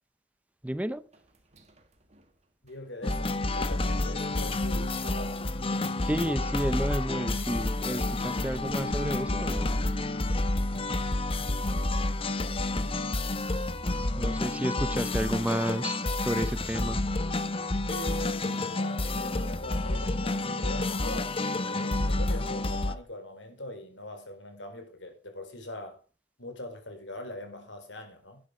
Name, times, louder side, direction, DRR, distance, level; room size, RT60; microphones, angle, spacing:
voice 1, 0.6-1.0 6.0-9.8 14.2-16.0 16.2-17.0, right 1 dB, 10° right, 0.5 m, -31 dB
sound 1, 1.1-7.1 7.4-10.3 10.6-10.7 11.2-11.3 11.9-12.2 12.5-12.6 13.1-13.2, right 1 dB, 40° right, 2.1 m, -57 dB
voice 2, 2.6-5.3 17.9-21.4 21.6-26.0 26.4-28.4, left 1 dB, 90° left, 4.1 m, -41 dB
sound 2, 3.0-23.0, left 2 dB, 30° left, 0.9 m, -29 dB
12.0 x 9.6 x 4.9 m
head